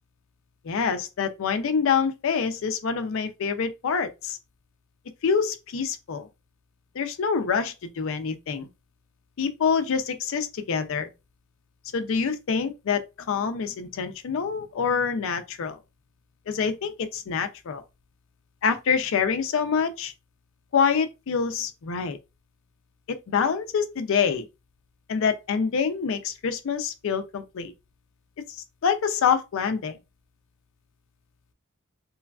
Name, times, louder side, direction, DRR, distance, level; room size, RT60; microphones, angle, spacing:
voice 1, 0.6-4.4 5.2-6.3 6.9-8.7 9.4-11.1 11.9-15.8 16.5-17.8 18.6-20.1 20.7-22.2 23.1-24.5 25.1-27.7 28.6-30.0, left 6 dB, 60° left, 0.4 m, -26 dB
3.1 x 2.3 x 2.2 m
head